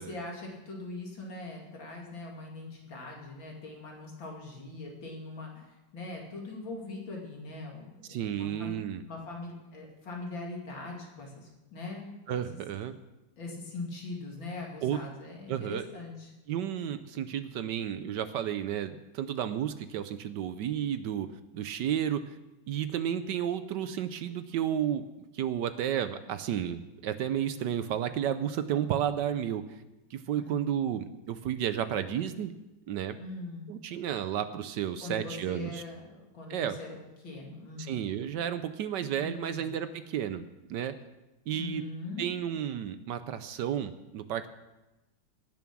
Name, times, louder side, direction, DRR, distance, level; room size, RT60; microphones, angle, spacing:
voice 1, 0.0-8.8 9.1-12.4 13.4-16.3 30.4-30.6 33.2-33.7 35.0-36.9 37.2-38.1 39.1-39.7 41.5-42.3, left 2 dB, 65° left, -1 dB, 3.2 m, -41 dB
voice 2, 8.1-9.0 12.3-13.0 14.8-15.0 15.5-15.8 16.5-21.3 21.5-22.4 22.7-25.0 25.3-29.6 30.1-32.5 32.9-33.2 33.7-35.8 36.5-36.8 37.8-40.4 40.7-40.9 41.5-41.8 42.2-44.5, right 10 dB, 70° right, 11 dB, 1.1 m, -32 dB
18.0 x 7.2 x 6.0 m, 1.0 s
omnidirectional pair, 2.3 m